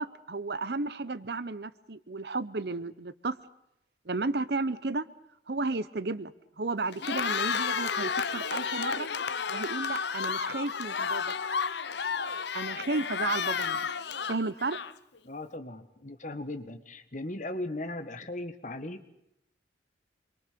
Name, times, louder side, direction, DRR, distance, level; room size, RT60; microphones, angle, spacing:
voice 1, 0.0-3.4 4.0-5.1 5.5-6.3 6.6-9.1 9.5-11.3 12.5-13.8 14.3-14.8, right 3 dB, 60° right, 16 dB, 0.9 m, -33 dB
Cheering, 6.9-15.2, left 6 dB, 65° left, 0.8 m, -32 dB
voice 2, 15.2-19.0, left 2 dB, 40° left, 9 dB, 1.6 m, -38 dB
26.5 x 23.0 x 6.9 m, 0.81 s
head